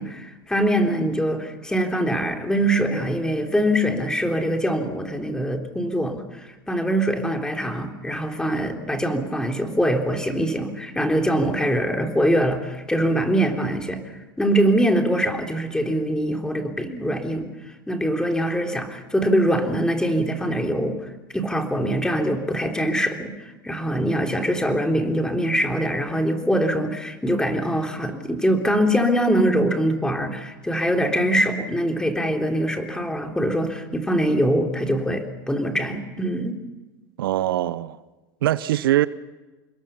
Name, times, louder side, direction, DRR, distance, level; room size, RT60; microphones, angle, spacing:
voice 1, 0.0-6.2 6.7-14.0 14.4-17.5 17.9-21.0 21.3-23.4 23.6-36.6, equal, 5° left, 3.6 m, -23 dB
voice 2, 37.2-38.0 38.4-39.1, right 13 dB, 80° right, 0.8 m, -22 dB
27.5 x 22.0 x 5.7 m
hypercardioid pair, 95°, 12 cm